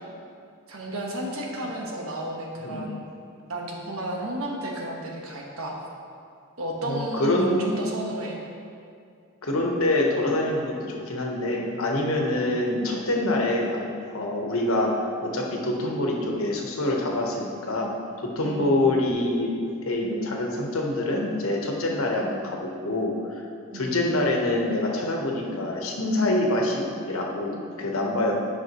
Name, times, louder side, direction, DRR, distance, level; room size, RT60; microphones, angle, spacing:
voice 1, 0.7-3.0 3.5-5.8 6.6-8.4 12.3-12.5 18.4-18.8 23.7-24.0, right 1 dB, 85° right, -1 dB, 1.3 m, -32 dB
voice 2, 6.8-7.8 9.4-14.9 15.2-19.6 19.8-23.1 23.7-28.4, left 1 dB, 85° left, 0 dB, 1.1 m, -26 dB
11.0 x 5.9 x 3.0 m, 2.4 s
head